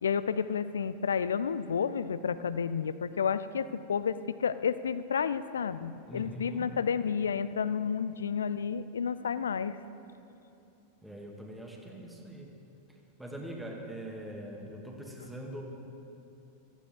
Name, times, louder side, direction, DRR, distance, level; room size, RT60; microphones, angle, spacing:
voice 1, 0.0-9.8, left 7 dB, 70° left, 15 dB, 0.4 m, -31 dB
voice 2, 6.1-6.7 11.0-12.6 13.2-15.6, right 1 dB, 5° right, 0 dB, 1.8 m, -42 dB
16.5 x 14.5 x 3.6 m, 2.8 s
figure-of-eight pair, 90°, 0 cm